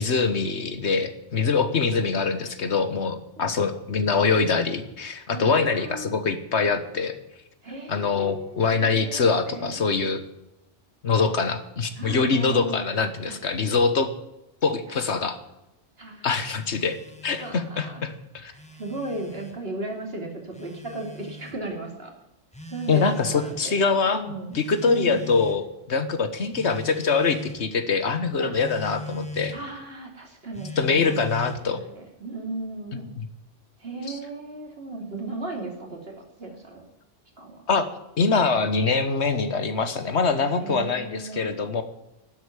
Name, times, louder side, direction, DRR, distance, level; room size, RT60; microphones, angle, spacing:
voice 1, 0.0-7.1 7.9-10.2 11.0-14.1 14.6-15.4 16.2-17.0 17.2-18.5 22.9-24.2 24.5-29.5 30.8-31.8 33.2-33.3 34.1-34.2 37.7-37.9 38.2-41.8, left 4 dB, 70° left, 10 dB, 1.5 m, -24 dB
voice 2, 5.3-6.2 7.6-9.8 12.0-12.8 13.3-13.7 14.9-15.0 16.0-16.4 17.4-18.0 18.5-22.1 22.7-23.7 24.1-24.6 24.8-25.2 28.4-28.5 29.5-33.1 33.8-36.8 37.4-37.6 40.6-41.5, right 2 dB, 55° right, 1 dB, 3.2 m, -36 dB
Telephone, 16.5-17.6 18.4-19.6 20.5-21.6 22.5-23.6 24.5-25.7 26.5-27.6 28.5-29.6 30.5-31.7, left 3 dB, 5° left, 1.7 m, -40 dB
12.5 x 8.2 x 9.7 m, 0.90 s
omnidirectional pair, 1.2 m